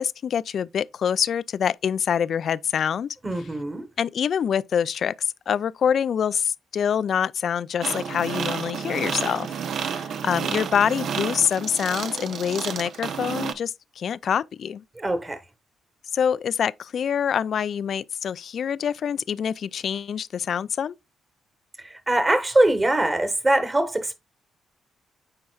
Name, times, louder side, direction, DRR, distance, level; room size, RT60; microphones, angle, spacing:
voice 1, 0.0-3.1 4.0-9.5 9.7-14.8 16.1-20.9, left 8 dB, 60° left, 0.3 m, -25 dB
voice 2, 3.2-3.9 14.9-15.4 21.8-24.1, right 1 dB, 25° right, 1.5 m, -22 dB
sound 1, 7.8-13.5, right 7 dB, 65° right, 0.7 m, -30 dB
9.5 x 4.4 x 2.4 m
supercardioid pair, 65°, 0 cm